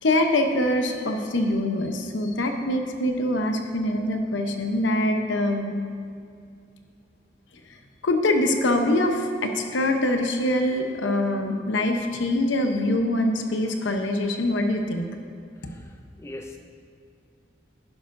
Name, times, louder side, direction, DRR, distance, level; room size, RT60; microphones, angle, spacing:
voice 1, 0.0-5.7 8.0-15.0, left 1 dB, 80° left, 5 dB, 0.8 m, -24 dB
voice 2, 15.6-16.6, left 1 dB, 15° left, 3 dB, 0.4 m, -41 dB
11.0 x 10.5 x 2.6 m, 2.3 s
head